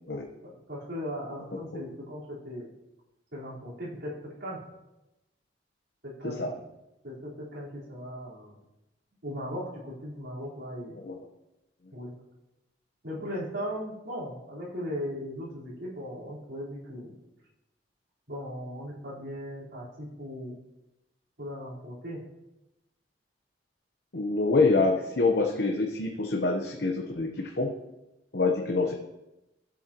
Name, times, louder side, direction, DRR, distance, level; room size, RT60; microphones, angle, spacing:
voice 1, 0.4-2.7 3.3-4.6 6.0-6.6 7.0-8.6 9.2-10.9 11.9-12.1 13.0-17.1 18.3-20.5 21.4-22.2, equal, 75° right, -8 dB, 4.3 m, -38 dB
voice 2, 24.1-27.7 28.3-28.9, left 3 dB, 65° left, 1 dB, 1.0 m, -26 dB
15.5 x 8.2 x 3.0 m, 0.96 s
head